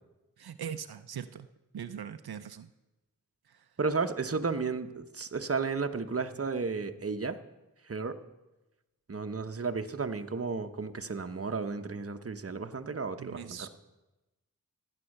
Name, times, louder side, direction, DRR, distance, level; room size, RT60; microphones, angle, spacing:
voice 1, 0.4-1.5 1.7-2.7 3.4-3.8 13.2-13.7, right 8 dB, 85° right, 10 dB, 0.6 m, -41 dB
voice 2, 3.8-7.4 7.9-8.2 9.1-13.7, right 4 dB, 40° right, 8 dB, 1.0 m, -33 dB
14.5 x 9.9 x 6.5 m, 1.1 s
wide cardioid pair, 50°, 36 cm